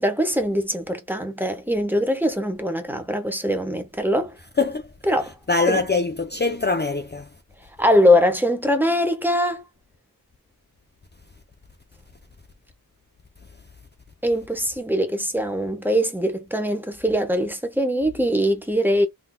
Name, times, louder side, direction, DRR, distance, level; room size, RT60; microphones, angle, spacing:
voice 1, 0.0-4.4 5.1-5.3 5.7-5.8 7.8-9.6 14.2-19.1, equal, 5° right, 1.0 m, -22 dB
voice 2, 4.6-4.9 5.5-7.3, left 3 dB, 30° left, 0.5 m, -23 dB
3.8 x 2.7 x 2.2 m
wide cardioid pair, 60°, 36 cm